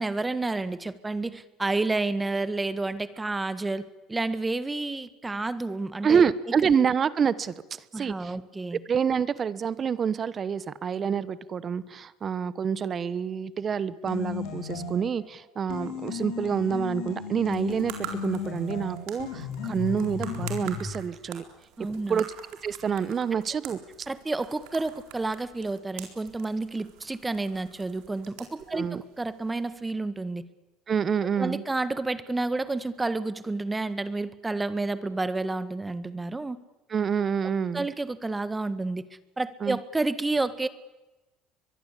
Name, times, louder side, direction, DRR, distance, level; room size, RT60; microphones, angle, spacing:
voice 1, 0.0-3.8 4.1-6.2 7.9-8.8 21.8-22.2 24.1-30.4 31.4-36.6 37.7-39.0 39.4-40.7, right 2 dB, 15° right, 14 dB, 1.6 m, -30 dB
voice 2, 6.0-7.5 7.9-8.3 8.7-21.4 22.1-22.4 22.6-23.8 28.7-29.0 30.9-31.6 36.9-37.9 39.6-39.8, right 7 dB, 40° right, 17 dB, 1.2 m, -27 dB
sound 1, 14.0-15.2 15.7-20.9, left 7 dB, 75° left, 5.8 m, -35 dB
sound 2, 17.4-29.9, right 10 dB, 75° right, 4.1 m, -46 dB
23.0 x 23.0 x 8.5 m, 1.0 s
supercardioid pair, 90°, 0 cm